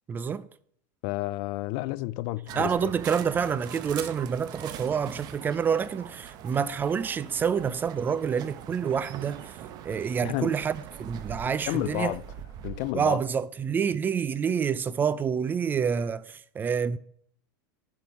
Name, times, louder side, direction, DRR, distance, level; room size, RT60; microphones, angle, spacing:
voice 1, 0.1-0.5 2.6-9.6 9.8-12.1 12.9-17.0, right 7 dB, 20° right, 0.3 m, -28 dB
voice 2, 1.0-2.9 10.2-10.5 11.7-12.2 12.6-13.2, left 18 dB, 50° left, 0.4 m, -31 dB
sound 1, 2.5-12.9, right 10 dB, 40° right, 0.8 m, -42 dB
7.6 x 5.4 x 7.1 m
supercardioid pair, 135°, 10 cm